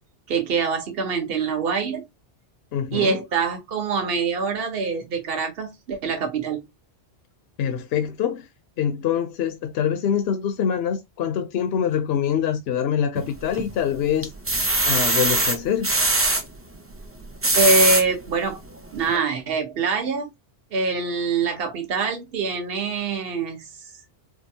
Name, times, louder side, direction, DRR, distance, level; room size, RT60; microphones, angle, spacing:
voice 1, 0.3-2.0 2.9-6.6 17.5-18.6 18.9-20.3 20.7-23.6, right 4 dB, 55° right, 1.1 m, -24 dB
voice 2, 2.7-3.2 7.6-8.5 8.8-14.3 14.8-15.9, left 8 dB, 65° left, 0.8 m, -24 dB
sound 1, 13.1-13.8 14.2-16.4 17.2-18.0 18.6-18.7 19.1-19.2, right 2 dB, 20° right, 0.4 m, -21 dB
4.8 x 2.2 x 2.7 m
omnidirectional pair, 1.2 m